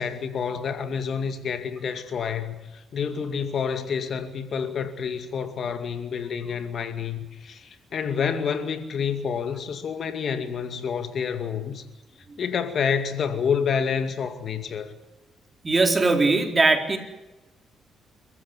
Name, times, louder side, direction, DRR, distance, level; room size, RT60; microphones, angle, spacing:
voice 1, 0.0-11.8 12.4-14.9, left 6 dB, 55° left, 2.4 m, -28 dB
voice 2, 15.6-17.0, right 3 dB, 25° right, 4.1 m, -20 dB
27.0 x 15.0 x 9.8 m
cardioid pair, 90°, 0 cm